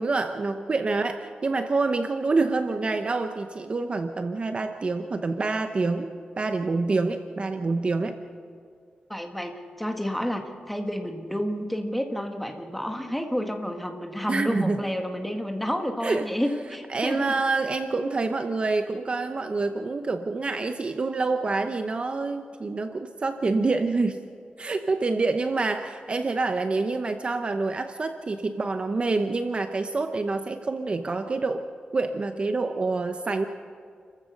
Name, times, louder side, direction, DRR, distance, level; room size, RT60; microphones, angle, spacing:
voice 1, 0.0-8.2 14.3-14.8 16.0-16.3 16.9-24.2 24.6-31.6 31.9-33.4, right 3 dB, 35° right, 7 dB, 0.8 m, -27 dB
voice 2, 9.1-17.2, equal, 5° left, 4 dB, 1.8 m, -30 dB
30.0 x 15.0 x 6.5 m, 2.2 s
wide cardioid pair, 150°, 3 cm